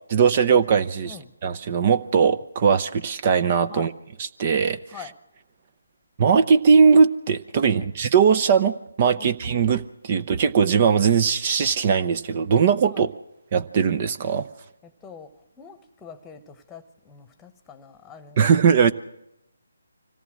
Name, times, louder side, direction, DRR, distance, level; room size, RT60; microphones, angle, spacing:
voice 1, 0.1-1.1 1.4-3.9 4.4-4.8 6.2-13.1 13.5-14.5 18.4-18.9, right 6 dB, 35° right, 0.7 m, -19 dB
voice 2, 14.8-18.9, left 7 dB, 10° left, 1.3 m, -44 dB
25.0 x 17.5 x 6.4 m
figure-of-eight pair, 150°, 0 cm